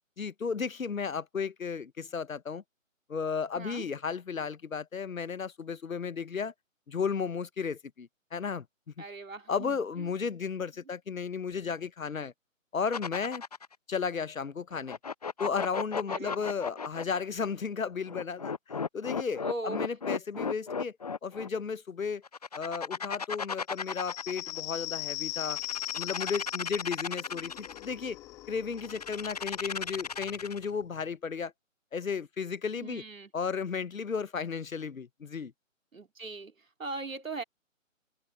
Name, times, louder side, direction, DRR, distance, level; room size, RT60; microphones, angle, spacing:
voice 1, 0.2-2.6 3.1-6.5 6.9-8.6 9.5-12.3 12.7-13.4 13.9-15.0 15.4-18.6 18.9-20.9 21.2-22.2 22.5-25.6 25.9-28.2 28.5-31.5 31.9-33.0 33.3-35.5, left 6 dB, 80° left, 0.9 m, -34 dB
voice 2, 3.6-3.9 9.0-10.1 10.8-10.9 16.1-16.5 19.3-19.9 20.4-20.5 32.7-33.3 35.9-37.4, right 3 dB, 75° right, 2.6 m, -40 dB
sound 1, 12.9-13.7 14.7-17.2 18.1-21.5 22.2-24.6 25.4-27.9 28.8-30.7, left 5 dB, 30° left, 0.7 m, -35 dB
sound 2, 23.8-31.0, left 18 dB, 10° left, 1.2 m, -41 dB
figure-of-eight pair, 150°, 40 cm